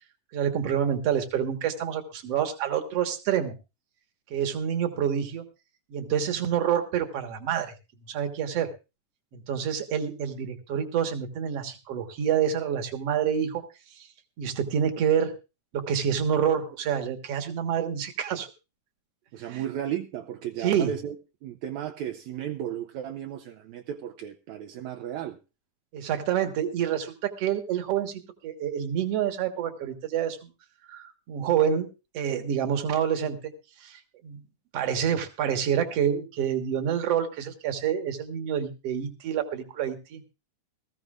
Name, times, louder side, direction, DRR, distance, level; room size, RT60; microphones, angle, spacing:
voice 1, 0.3-3.5 4.3-5.4 5.9-7.7 8.1-8.7 9.3-13.6 14.4-15.3 15.7-18.5 19.5-19.6 20.6-20.9 25.9-30.5 30.9-31.9 32.1-33.4 33.8-34.4 34.7-40.3, right 8 dB, 55° right, 6 dB, 2.3 m, -27 dB
voice 2, 19.3-21.2 21.4-25.4, right 10 dB, 75° right, 7 dB, 2.0 m, -34 dB
19.0 x 15.0 x 2.4 m, 0.29 s
omnidirectional pair, 3.5 m